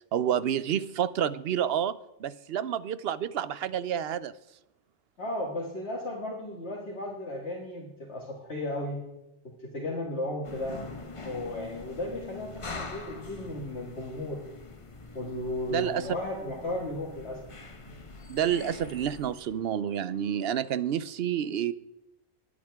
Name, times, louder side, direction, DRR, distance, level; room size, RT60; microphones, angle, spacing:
voice 1, 0.1-4.3 15.7-16.1 18.3-21.7, right 9 dB, 65° right, 16 dB, 0.8 m, -29 dB
voice 2, 5.2-9.0 9.4-10.8 11.2-14.4 15.1-17.5, left 1 dB, 70° left, -3 dB, 2.2 m, -35 dB
sound 1, 10.4-19.6, left 3 dB, 30° left, 1.1 m, -44 dB
21.5 x 8.7 x 3.5 m, 0.91 s
omnidirectional pair, 1.2 m